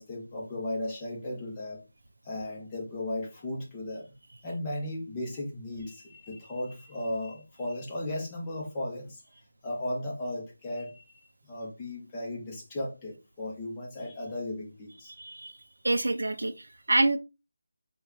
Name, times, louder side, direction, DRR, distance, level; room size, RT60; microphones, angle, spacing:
voice 1, 0.0-1.8 2.2-4.1 4.4-9.2 9.6-11.1 11.4-15.1, left 1 dB, 15° left, 0.6 m, -36 dB
voice 2, 15.1-15.6 15.8-17.2, right 2 dB, 85° right, 0.4 m, -27 dB
3.5 x 2.1 x 3.0 m
figure-of-eight pair, 175°, 0 cm